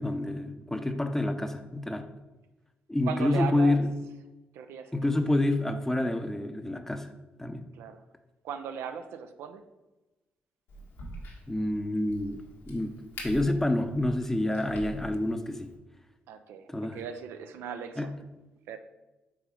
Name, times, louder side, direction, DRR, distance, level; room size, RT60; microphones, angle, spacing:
voice 1, 0.0-2.1 2.9-3.9 4.9-7.1 7.4-7.7 11.5-12.4 12.7-12.9 13.2-15.7 16.7-17.0 18.0-18.1, left 1 dB, 10° left, 8 dB, 0.6 m, -28 dB
voice 2, 3.1-3.8 4.5-4.9 7.8-8.0 8.4-9.6 16.3-18.1 18.7-18.8, right 8 dB, 85° right, 8 dB, 0.5 m, -38 dB
Crack, 10.7-15.7, equal, 85° left, 1.6 m, -45 dB
5.6 x 3.9 x 5.0 m, 1.1 s
cardioid pair, 70°, 4 cm